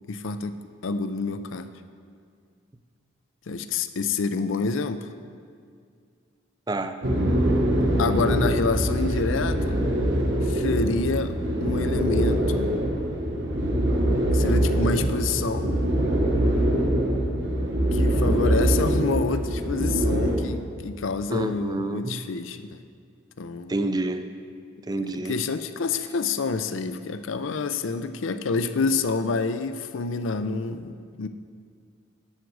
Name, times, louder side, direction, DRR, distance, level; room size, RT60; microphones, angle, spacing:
voice 1, 0.1-1.7 3.5-5.1 8.0-9.8 10.4-12.8 14.3-15.8 17.9-22.8 23.4-23.7 25.1-31.3, left 4 dB, 75° left, 11 dB, 0.5 m, -28 dB
voice 2, 6.7-7.0 21.3-22.2 23.7-24.3 24.9-25.4, right 2 dB, 20° right, 9 dB, 0.4 m, -28 dB
sound 1, 7.0-20.4, right 1 dB, 65° right, 1.2 m, -23 dB
11.0 x 9.2 x 4.8 m, 2.2 s
head